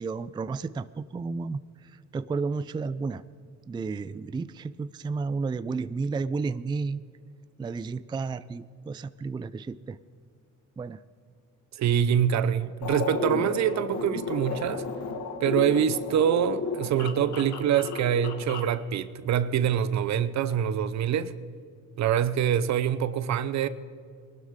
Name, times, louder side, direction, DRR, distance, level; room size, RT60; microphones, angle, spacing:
voice 1, 0.0-3.2 3.7-7.0 7.6-10.0 10.8-11.0, right 4 dB, 15° right, 0.3 m, -32 dB
voice 2, 11.8-14.9 15.4-21.3 22.0-23.7, right 9 dB, 65° right, 0.7 m, -25 dB
sound 1, 12.8-18.8, left 4 dB, 70° left, 1.6 m, -33 dB
20.0 x 12.5 x 3.7 m
cardioid pair, 85°, 30 cm